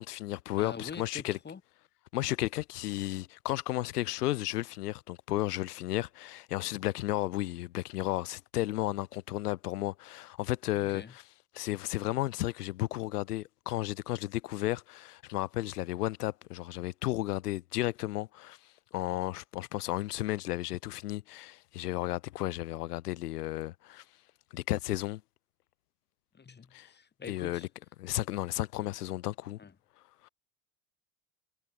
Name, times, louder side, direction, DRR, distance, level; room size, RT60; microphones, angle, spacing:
voice 1, 0.0-1.4 2.1-11.2 11.5-18.6 18.9-24.0 24.5-25.2 26.7-26.9 27.3-27.7 28.0-29.6 30.2-30.3, left 15 dB, 90° left, 1.4 m, -33 dB
voice 2, 0.5-1.6 10.8-11.1 26.3-27.7 28.8-28.9 29.6-29.7, left 6 dB, 20° left, 2.1 m, -45 dB
hypercardioid pair, 80°, 45 cm